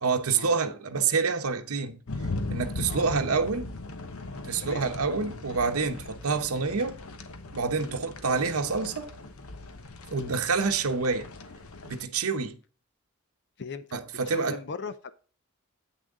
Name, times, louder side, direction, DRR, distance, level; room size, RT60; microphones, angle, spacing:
voice 1, 0.0-2.0 2.5-3.7 4.4-7.0 7.5-9.1 10.1-11.3 11.8-12.6 13.9-14.6, right 5 dB, 75° right, 0.9 m, -27 dB
sound 1, 2.1-12.1, left 2 dB, 70° left, 0.9 m, -39 dB
voice 2, 13.6-14.0 14.3-15.1, left 4 dB, 50° left, 0.6 m, -39 dB
8.3 x 6.3 x 3.6 m
head